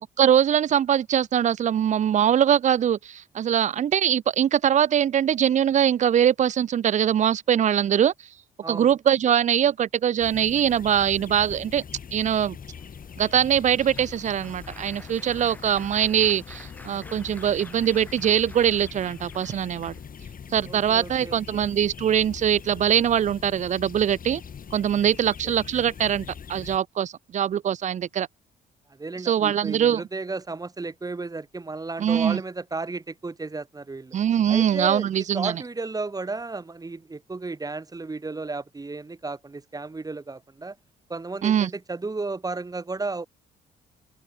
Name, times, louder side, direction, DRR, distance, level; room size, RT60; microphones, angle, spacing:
voice 1, 0.2-8.1 8.7-11.8 12.1-12.6 13.2-19.9 20.5-24.4 24.7-28.3 29.2-30.0 32.0-32.4 34.1-35.6 41.4-41.7, right 9 dB, 40° right, 0.4 m, -22 dB
sound 1, 10.2-26.8, left 7 dB, 45° left, 2.3 m, -42 dB
Applause, 12.4-20.3 21.0-21.2 21.5-21.7, left 1 dB, 10° left, 4.5 m, -50 dB
voice 2, 20.7-21.6 25.2-25.3 29.0-34.1 34.5-40.8 41.1-43.3, right 3 dB, 20° right, 1.1 m, -33 dB
open air
cardioid pair, 90°, 20 cm